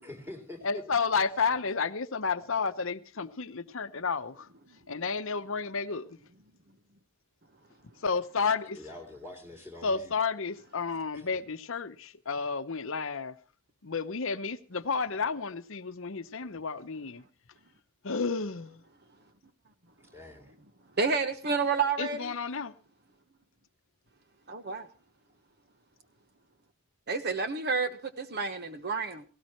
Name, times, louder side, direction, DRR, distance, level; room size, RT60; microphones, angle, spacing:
voice 1, 0.0-0.8 8.8-10.1 11.1-11.3 20.1-20.5, left 2 dB, 10° right, 3.5 m, -45 dB
voice 2, 0.6-4.5 4.9-6.1 8.0-8.8 9.8-13.3 13.8-17.2 18.0-18.8 22.0-22.7, left 5 dB, 60° left, 0.9 m, -31 dB
voice 3, 21.0-22.3 24.5-24.9 27.1-29.2, right 4 dB, 45° right, 1.2 m, -30 dB
18.0 x 17.5 x 3.1 m
head